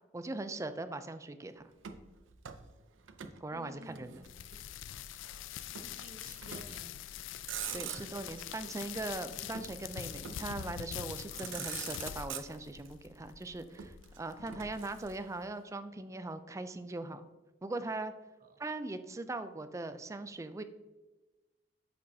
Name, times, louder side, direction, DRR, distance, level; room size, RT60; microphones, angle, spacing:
voice 1, 0.1-1.6 3.2-4.2 7.7-17.3 17.6-18.1 18.6-20.6, right 2 dB, 15° right, 10 dB, 0.3 m, -40 dB
Motor vehicle (road), 1.8-3.4 3.7-4.8 5.7-6.0 6.4-6.9 7.3-8.3 9.5-10.6 11.1-11.2 11.4-12.9 13.8-15.4, right 8 dB, 85° right, 0.6 m, -44 dB
voice 2, 3.5-4.3 5.8-7.0 7.7-9.0 11.3-11.7 18.4-18.6, right 2 dB, 45° right, 6 dB, 0.7 m, -54 dB
sound 1, 4.2-15.2, left 10 dB, 80° left, 0.3 m, -44 dB
8.6 x 5.3 x 2.7 m, 1.1 s
head